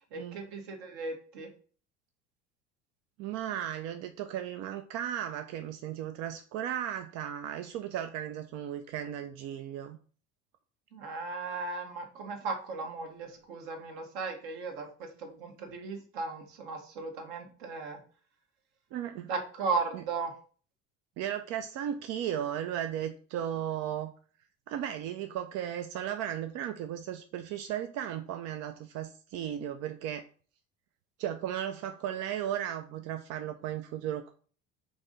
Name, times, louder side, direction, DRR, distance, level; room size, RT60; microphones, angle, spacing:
voice 1, 0.1-1.5 10.9-18.0 19.3-20.3, right 4 dB, 60° right, 4 dB, 1.2 m, -36 dB
voice 2, 3.2-10.0 18.9-19.3 19.9-20.0 21.2-24.1 24.7-30.3 31.2-34.3, right 10 dB, 45° right, 7 dB, 0.5 m, -35 dB
4.6 x 2.7 x 3.9 m, 0.42 s
figure-of-eight pair, 65°, 38 cm